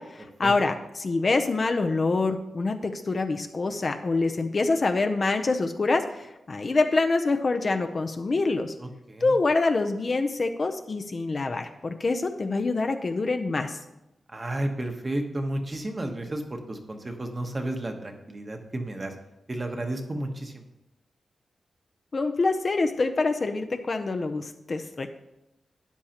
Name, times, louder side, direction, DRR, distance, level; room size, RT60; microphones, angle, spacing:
voice 1, 0.0-8.7 9.2-13.8 22.1-25.1, left 3 dB, 35° left, 6 dB, 0.5 m, -26 dB
voice 2, 8.8-9.3 14.3-19.1 19.5-20.6, right 1 dB, 25° right, 4 dB, 1.0 m, -32 dB
12.5 x 9.8 x 2.9 m, 0.93 s
wide cardioid pair, 175°, 0 cm